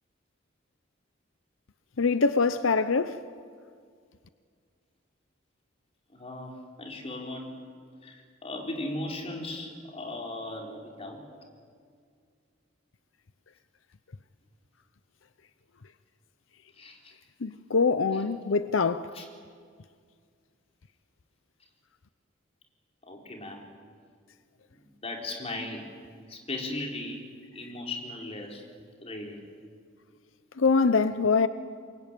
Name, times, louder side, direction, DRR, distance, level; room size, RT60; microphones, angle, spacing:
voice 1, 2.0-3.3 17.4-19.2 30.6-31.5, left 4 dB, 85° left, 0.7 m, -24 dB
voice 2, 6.1-7.5 8.0-11.2 16.7-17.2 19.1-19.2 23.0-23.7 24.7-25.9 26.3-27.2 27.5-28.6 29.0-29.4 31.4-31.5, left 2 dB, 30° left, 4.3 m, -37 dB
28.0 x 23.0 x 9.2 m
head